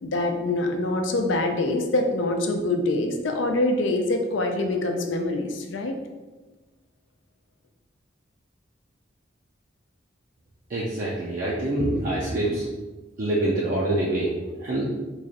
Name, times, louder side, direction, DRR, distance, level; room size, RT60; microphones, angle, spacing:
voice 1, 0.0-6.0, left 2 dB, 80° left, 4 dB, 0.5 m, -25 dB
voice 2, 10.7-12.7 13.2-14.3 14.6-14.9, right 1 dB, 45° right, -5 dB, 0.5 m, -25 dB
3.1 x 2.4 x 3.9 m, 1.2 s
head